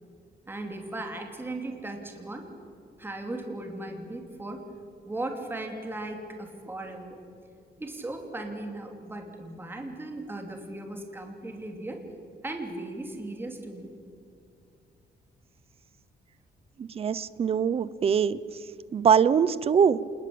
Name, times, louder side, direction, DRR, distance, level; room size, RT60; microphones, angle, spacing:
voice 1, 0.5-2.5 3.0-4.7 5.0-7.2 7.8-12.0 12.4-13.9, right 2 dB, 10° right, 4 dB, 2.8 m, -37 dB
voice 2, 16.8-18.4 18.9-20.0, right 7 dB, 35° right, 18 dB, 0.7 m, -23 dB
27.0 x 20.5 x 8.6 m, 2.5 s
cardioid pair, 170°, 17 cm